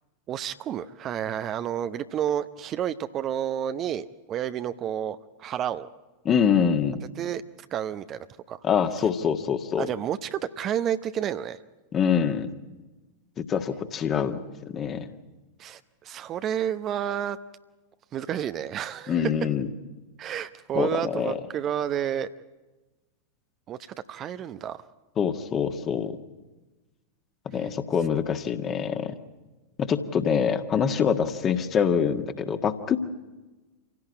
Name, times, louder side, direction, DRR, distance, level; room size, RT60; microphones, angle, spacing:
voice 1, 0.3-5.9 7.2-7.4 7.7-8.6 9.8-11.6 15.6-17.4 18.1-19.3 20.2-22.3 23.7-23.8 24.1-24.8 27.6-27.7, right 10 dB, 30° right, 11 dB, 0.7 m, -30 dB
voice 2, 6.2-7.0 8.6-9.9 11.9-12.5 13.4-14.4 14.7-15.1 19.1-19.7 20.7-21.4 25.2-26.2 27.4-29.1 29.8-33.0, left 7 dB, 25° left, 7 dB, 1.6 m, -25 dB
27.0 x 17.0 x 9.8 m, 1.2 s
figure-of-eight pair, 90°, 0 cm